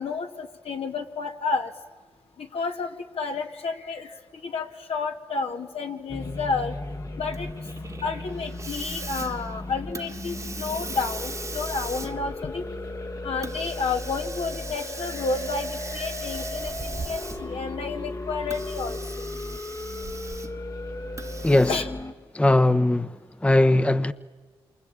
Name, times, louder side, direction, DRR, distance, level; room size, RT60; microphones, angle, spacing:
voice 1, 0.0-1.7 2.4-6.8 7.2-7.5 8.0-12.6 13.2-19.0 21.7-21.9, left 4 dB, 75° left, 2.2 m, -31 dB
sound 1, 6.1-22.1, left 2 dB, 35° left, 1.4 m, -36 dB
Hiss, 7.3-17.7 18.4-20.7 21.2-21.8, right 3 dB, 30° right, 1.4 m, -39 dB
voice 2, 21.4-21.8 22.3-24.1, left 1 dB, 10° left, 1.0 m, -20 dB
27.5 x 24.0 x 8.8 m
cardioid pair, 70°, 10 cm